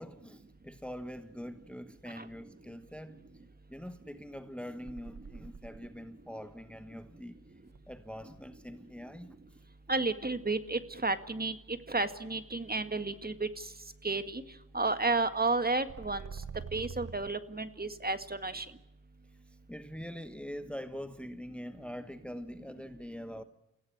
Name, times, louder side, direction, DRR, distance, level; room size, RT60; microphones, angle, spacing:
voice 1, 0.0-3.2 3.7-7.4 7.9-9.6 19.3-23.4, equal, 5° left, 1.2 m, -44 dB
sound 1, 4.8-6.1 7.7-8.7 15.6-17.3, right 6 dB, 55° right, 1.2 m, -45 dB
voice 2, 9.9-11.6 11.9-13.5 14.0-14.4 14.7-16.3 16.7-18.7, right 3 dB, 30° right, 1.9 m, -32 dB
29.5 x 17.0 x 8.8 m
wide cardioid pair, 75°, 32 cm